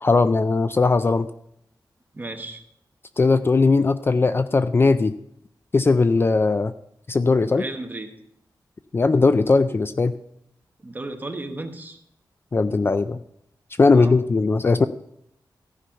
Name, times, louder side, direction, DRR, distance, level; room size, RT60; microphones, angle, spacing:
voice 1, 0.0-1.3 3.2-5.1 5.7-6.7 7.1-7.6 8.9-10.1 12.5-13.2 13.8-14.9, left 3 dB, 30° left, 12 dB, 0.3 m, -19 dB
voice 2, 2.1-2.6 7.5-8.1 10.8-12.0 13.9-14.2, right 2 dB, 25° right, 5 dB, 1.2 m, -34 dB
14.5 x 5.6 x 5.6 m, 0.75 s
wide cardioid pair, 115°, 7 cm